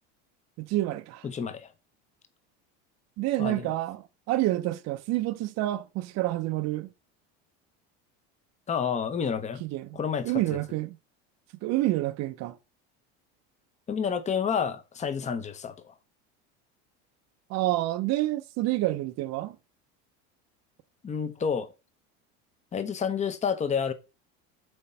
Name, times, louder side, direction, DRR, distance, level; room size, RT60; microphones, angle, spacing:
voice 1, 0.6-1.3 3.2-6.9 9.6-10.0 10.2-11.0 11.6-12.6 17.5-19.6, right 16 dB, 55° right, 0.7 m, -28 dB
voice 2, 1.2-1.7 3.4-3.7 8.7-9.6 9.9-10.6 13.9-15.9 21.0-21.7 22.7-23.9, left 7 dB, 20° left, 0.9 m, -29 dB
7.8 x 3.1 x 5.6 m
supercardioid pair, 130°, 31 cm